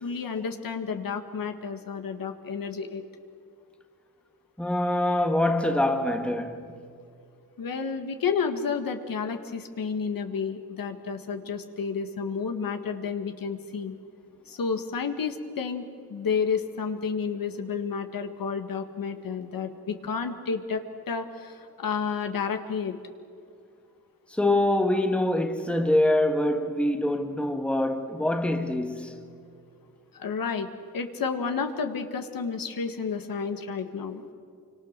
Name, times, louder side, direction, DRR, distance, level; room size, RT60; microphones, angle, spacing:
voice 1, 0.0-3.0 7.6-14.0 14.5-23.0 30.1-30.7 30.9-34.2, left 5 dB, 65° left, 1.8 m, -31 dB
voice 2, 4.6-6.7 24.3-29.2, left 1 dB, 5° left, 1.6 m, -25 dB
26.5 x 25.0 x 6.7 m
cardioid pair, 90°, 37 cm